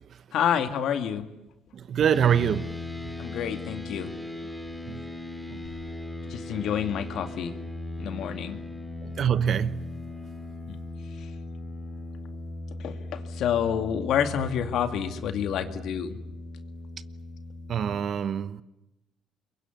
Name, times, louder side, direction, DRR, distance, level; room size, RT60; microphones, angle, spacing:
voice 1, 0.3-1.3 3.2-4.1 6.3-7.5 8.0-8.6 10.7-10.8 11.2-11.3 12.8-16.2, left 9 dB, 70° left, 2.3 m, -28 dB
voice 2, 1.7-2.8 3.0-3.2 4.9-5.1 5.5-5.6 9.0-9.9 17.7-18.6, right 8 dB, 55° right, 1.1 m, -25 dB
sound 1, 2.1-18.0, left 2 dB, ahead, 3.2 m, -38 dB
27.5 x 23.0 x 9.4 m
cardioid pair, 110°, 0 cm